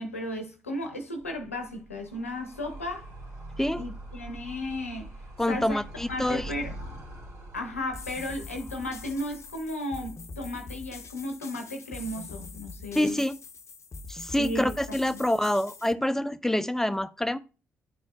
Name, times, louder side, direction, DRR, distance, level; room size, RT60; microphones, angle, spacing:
voice 1, 0.0-3.1 3.8-5.1 5.5-5.8 6.1-6.7 7.5-13.2 14.4-14.7 15.1-15.2, left 1 dB, 90° left, 0.8 m, -34 dB
Animal, 1.2-9.8, right 1 dB, 45° right, 2.0 m, -44 dB
voice 2, 5.4-6.5 12.9-13.4 14.1-17.4, left 1 dB, 5° left, 0.6 m, -26 dB
sound 1, 7.9-15.9, left 3 dB, 40° left, 0.8 m, -43 dB
10.5 x 4.3 x 2.3 m
figure-of-eight pair, 40°, 7 cm